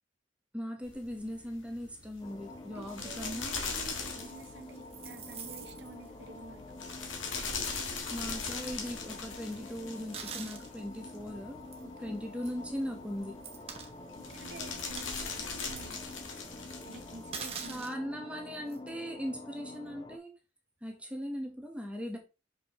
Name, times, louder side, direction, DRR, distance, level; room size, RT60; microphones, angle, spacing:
voice 1, 0.5-3.5 8.1-11.6 12.0-13.4 17.7-20.3 20.8-22.2, equal, 5° right, 1.2 m, -39 dB
sound 1, 0.8-17.8, left 4 dB, 85° left, 1.6 m, -41 dB
sound 2, 2.2-20.2, left 2 dB, 25° left, 0.7 m, -48 dB
voice 2, 2.7-6.9 11.8-12.1 14.3-16.2 16.8-17.9, right 2 dB, 60° right, 0.8 m, -50 dB
sound 3, 4.2-6.1 7.1-7.2 7.8-7.9 9.9-10.7 11.7-11.8 12.4-12.5 13.4-13.9 14.3-14.4 14.8-15.3 15.8-15.9 17.3-17.9 18.7-18.9, right 6 dB, 30° right, 1.0 m, -44 dB
6.4 x 5.2 x 3.1 m
head